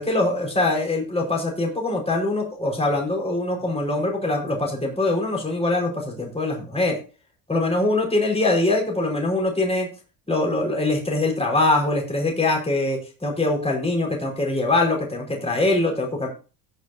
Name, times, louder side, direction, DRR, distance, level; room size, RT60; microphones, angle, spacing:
voice 1, 0.0-7.0 7.5-9.9 10.3-16.3, left 2 dB, 10° left, -1 dB, 5.2 m, -23 dB
17.0 x 6.9 x 2.8 m, 0.34 s
cardioid pair, 95°, 49 cm